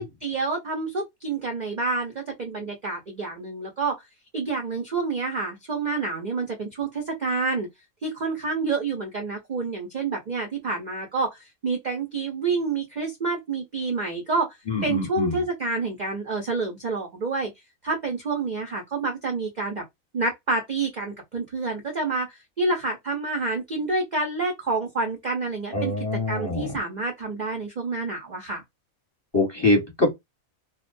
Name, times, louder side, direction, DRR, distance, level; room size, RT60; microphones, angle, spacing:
voice 1, 0.0-4.0 4.3-7.7 8.0-14.6 14.8-17.5 17.8-19.8 20.1-28.6, right 3 dB, 45° right, 0.6 m, -28 dB
voice 2, 14.7-15.4 25.7-26.7 29.3-30.1, left 2 dB, 20° left, 0.9 m, -24 dB
2.3 x 2.2 x 2.4 m
omnidirectional pair, 1.5 m